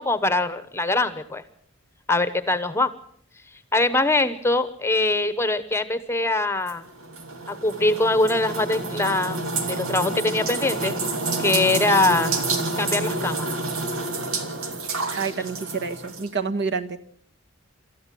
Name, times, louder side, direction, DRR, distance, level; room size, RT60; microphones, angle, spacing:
voice 1, 0.0-1.4 2.1-2.9 3.7-6.9 7.5-10.9 11.4-12.3 12.8-13.5, left 2 dB, 10° left, 13 dB, 1.0 m, -23 dB
sound 1, 6.7-16.3, right 3 dB, 75° right, 2.6 m, -28 dB
voice 2, 15.1-17.0, right 5 dB, 55° right, 10 dB, 1.4 m, -28 dB
27.5 x 14.0 x 7.7 m, 0.66 s
head